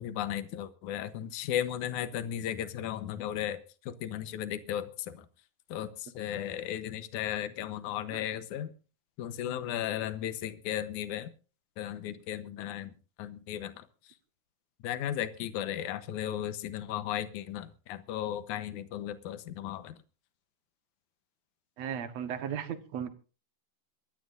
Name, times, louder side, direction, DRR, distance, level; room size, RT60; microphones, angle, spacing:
voice 1, 0.0-5.3 5.7-8.7 9.2-11.3 11.8-12.9 13.2-13.9 14.8-20.0, left 11 dB, 70° left, 11 dB, 2.3 m, -35 dB
voice 2, 21.8-23.1, right 8 dB, 60° right, 9 dB, 2.2 m, -36 dB
25.5 x 13.0 x 2.6 m, 0.36 s
omnidirectional pair, 3.9 m